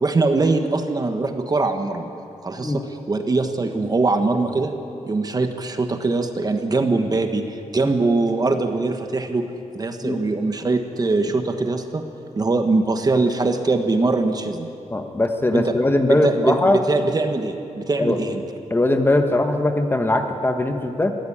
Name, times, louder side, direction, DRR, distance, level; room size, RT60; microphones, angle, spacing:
voice 1, 0.0-2.1 2.4-4.7 5.1-9.4 9.7-12.0 12.4-14.7 15.5-15.7 16.1-18.4, right 3 dB, 30° right, 6 dB, 1.3 m, -22 dB
voice 2, 14.9-16.8 18.0-18.2 18.7-21.1, left 2 dB, 15° left, 6 dB, 1.2 m, -20 dB
23.0 x 16.0 x 8.7 m, 2.7 s
wide cardioid pair, 155°, 13 cm